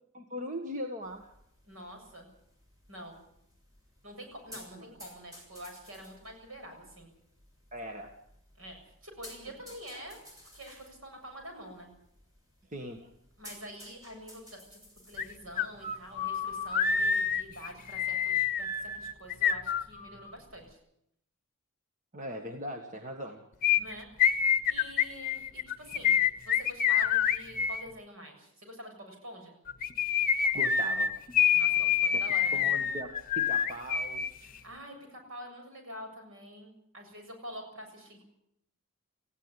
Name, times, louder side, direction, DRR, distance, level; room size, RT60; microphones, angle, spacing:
voice 1, 0.1-1.3 7.7-8.1 9.9-10.0 12.7-13.1 22.1-23.4 30.5-31.1 32.1-32.2 32.5-34.3, equal, 35° right, 4 dB, 1.7 m, -40 dB
sound 1, 1.0-18.5, left 1 dB, 15° right, 6.8 m, -56 dB
voice 2, 1.7-2.3 2.9-3.2 4.0-7.1 8.6-10.2 10.5-11.9 13.4-14.8 15.1-20.8 23.8-24.1 24.7-26.2 26.4-29.6 31.5-32.6 34.4-38.2, equal, 70° right, 4 dB, 7.4 m, -47 dB
sound 2, 15.2-15.3 15.6-20.3 23.6-27.8 29.7-34.3 34.6-34.7, left 8 dB, 40° left, 1.0 m, -27 dB
19.0 x 16.0 x 9.7 m, 0.75 s
head